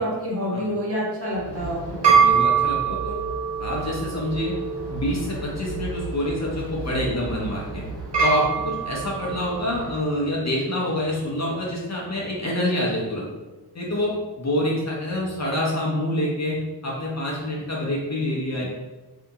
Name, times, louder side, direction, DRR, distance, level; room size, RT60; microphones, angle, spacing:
voice 1, 0.0-2.3, equal, 35° right, -7 dB, 1.5 m, -28 dB
sound 1, 1.4-9.9, right 6 dB, 75° right, 1.4 m, -25 dB
voice 2, 2.1-3.2 3.6-4.5 4.9-7.8 8.2-13.3 13.7-18.6, left 1 dB, 40° left, -4 dB, 0.8 m, -26 dB
2.8 x 2.7 x 3.5 m, 1.2 s
wide cardioid pair, 95°, 42 cm